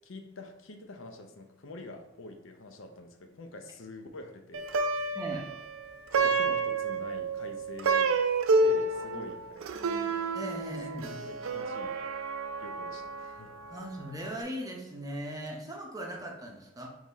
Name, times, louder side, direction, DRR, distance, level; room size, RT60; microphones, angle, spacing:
voice 1, 0.0-5.1 6.2-8.3 8.6-10.0 11.0-12.0 12.6-13.5, left 2 dB, 70° left, 5 dB, 0.7 m, -46 dB
Plucked string instrument, 4.5-14.0, right 3 dB, 85° right, 0.4 m, -30 dB
voice 2, 5.1-5.5 9.0-9.2 9.7-11.1 13.7-16.9, equal, 20° right, 0 dB, 0.7 m, -39 dB
3.9 x 3.1 x 4.0 m, 1.0 s
head